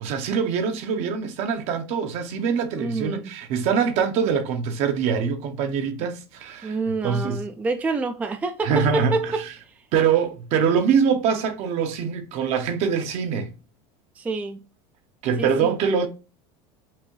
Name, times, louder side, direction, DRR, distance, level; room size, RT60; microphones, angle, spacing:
voice 1, 0.0-6.8 7.0-7.4 8.6-9.5 9.9-13.5 15.2-16.1, right 6 dB, 55° right, 0.9 m, -24 dB
voice 2, 2.8-3.3 6.6-9.7 14.2-14.6 15.4-15.7, right 3 dB, 10° right, 0.3 m, -27 dB
5.9 x 2.6 x 3.1 m
supercardioid pair, 140°, 13 cm